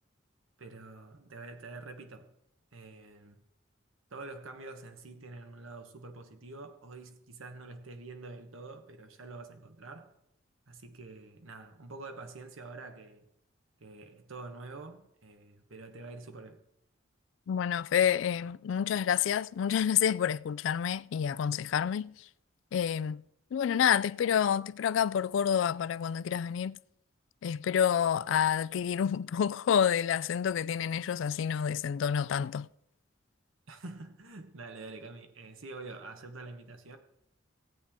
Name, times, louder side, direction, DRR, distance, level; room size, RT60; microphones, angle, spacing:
voice 1, 0.6-2.3 2.7-3.4 4.1-10.1 10.7-13.3 13.8-16.6 33.7-37.0, right 3 dB, 85° right, 1.2 m, -46 dB
voice 2, 17.5-22.1 22.7-23.2 23.5-26.8 27.4-32.7, left 8 dB, 70° left, 0.3 m, -28 dB
17.0 x 8.7 x 3.6 m
head